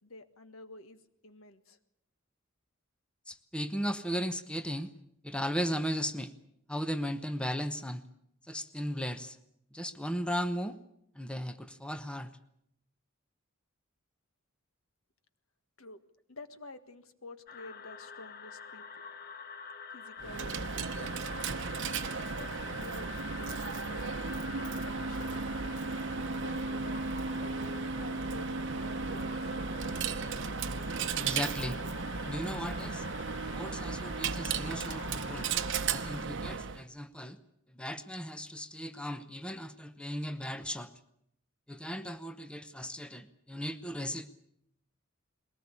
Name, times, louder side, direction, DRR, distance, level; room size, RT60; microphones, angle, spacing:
voice 1, 0.0-1.8 15.8-16.0 16.3-18.8 19.9-21.2 22.1-23.6 23.9-24.2 24.8-25.3 26.4-27.0 27.4-29.6, left 2 dB, 85° left, 10 dB, 1.6 m, -50 dB
voice 2, 3.3-4.9 5.2-6.3 6.7-8.0 8.5-9.4 9.7-10.8 11.1-12.3 31.1-31.8 32.2-33.0 33.5-35.5 35.9-37.4 37.7-40.9 41.7-44.4, equal, 5° left, 10 dB, 0.9 m, -36 dB
sound 1, 17.5-36.3, left 5 dB, 45° left, 0.9 m, -46 dB
Coin (dropping), 20.2-36.8, right 5 dB, 60° right, 0.8 m, -35 dB
21.5 x 18.5 x 8.5 m, 0.76 s
head